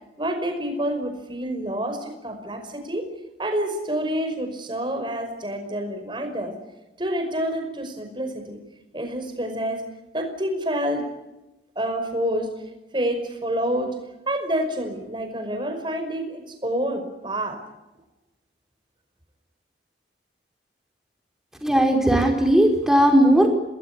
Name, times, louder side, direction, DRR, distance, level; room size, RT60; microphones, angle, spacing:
voice 1, 0.2-3.1 3.4-6.6 7.0-8.6 8.9-9.8 10.1-11.1 11.8-12.5 12.9-14.0 14.3-17.6, right 1 dB, 25° right, 6 dB, 5.4 m, -28 dB
voice 2, 21.6-23.5, right 1 dB, 5° right, 2 dB, 4.9 m, -17 dB
29.0 x 20.0 x 8.4 m, 0.99 s
head